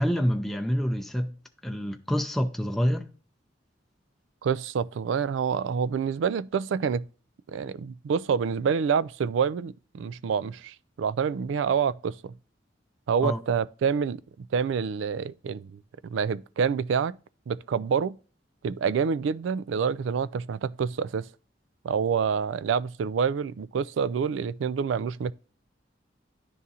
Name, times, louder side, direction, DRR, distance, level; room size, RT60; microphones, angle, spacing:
voice 1, 0.0-1.3 1.6-3.1 13.2-13.4, equal, ahead, 0.5 m, -27 dB
voice 2, 4.4-7.0 7.5-12.3 13.1-17.2 17.5-18.1 18.6-21.3 21.8-25.3, right 6 dB, 85° right, 0.3 m, -27 dB
10.5 x 3.6 x 2.7 m
head